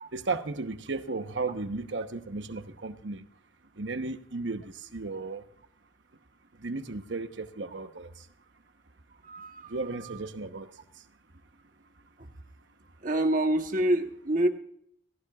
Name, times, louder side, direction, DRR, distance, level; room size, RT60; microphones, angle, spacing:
voice 1, 0.1-3.2 3.8-5.5 6.6-8.3 9.7-10.7, right 3 dB, 65° right, 1.0 m, -35 dB
voice 2, 9.2-9.7 10.1-10.2 13.0-14.5, right 1 dB, 40° right, 1.1 m, -27 dB
17.5 x 16.5 x 2.4 m
head